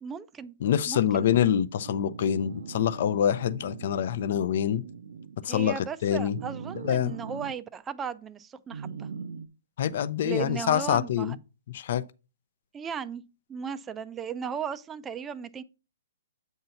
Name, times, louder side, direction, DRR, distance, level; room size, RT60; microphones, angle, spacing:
voice 1, 0.0-0.5 0.9-1.3 5.5-9.1 10.2-11.4 12.7-13.2 13.5-15.6, right 7 dB, 15° right, 0.3 m, -36 dB
voice 2, 0.6-4.8 5.4-5.7 6.0-6.4 6.8-7.1 9.8-11.4 11.7-12.0, left 9 dB, 55° left, 0.5 m, -25 dB
sound 1, 1.8-5.4 6.3-7.6 8.7-9.5, right 6 dB, 75° right, 0.5 m, -41 dB
7.8 x 2.7 x 5.7 m
hypercardioid pair, 150°, 0 cm